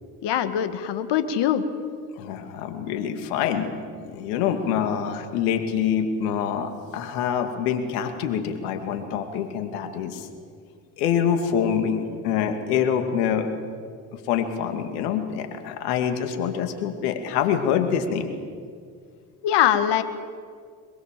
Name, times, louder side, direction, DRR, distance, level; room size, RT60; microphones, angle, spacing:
voice 1, 0.2-1.6 19.4-20.0, left 10 dB, 65° left, 10 dB, 1.9 m, -22 dB
voice 2, 2.2-3.7 4.1-10.3 11.0-13.5 14.3-18.3, left 8 dB, 80° left, 7 dB, 2.5 m, -25 dB
22.5 x 22.0 x 7.6 m, 2.1 s
hypercardioid pair, 65°, 46 cm